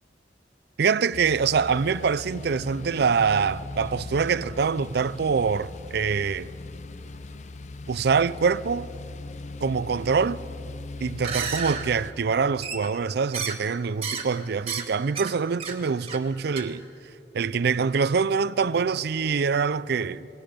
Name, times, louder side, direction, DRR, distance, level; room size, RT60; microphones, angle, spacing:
voice 1, 0.8-6.5 7.9-8.9 9.6-10.4 11.0-16.8 17.3-20.3, right 5 dB, 65° right, 0.5 m, -24 dB
sound 1, 1.1-12.1, left 2 dB, 40° left, 0.6 m, -39 dB
sound 2, 11.1-11.8 12.6-13.0 13.3-13.6 14.0-14.3 14.6-14.9 15.1-15.3 15.6-15.8 16.1-16.3 16.6-16.7, right 6 dB, 35° right, 1.9 m, -31 dB
30.0 x 20.5 x 5.2 m
head